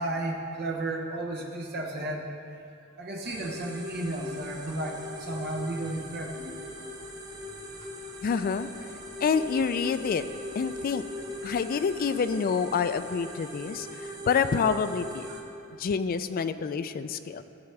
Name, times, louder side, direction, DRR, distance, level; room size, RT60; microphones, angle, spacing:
voice 1, 0.0-2.3 3.0-6.5 15.3-15.4, right 1 dB, 50° right, 0 dB, 0.8 m, -33 dB
sound 1, 3.2-15.4, left 1 dB, 20° right, 0.8 m, -40 dB
voice 2, 8.2-8.7 9.2-10.3 10.6-11.0 11.4-15.3 15.8-17.4, left 6 dB, 40° left, 11 dB, 0.3 m, -27 dB
13.5 x 7.0 x 3.3 m, 2.5 s
head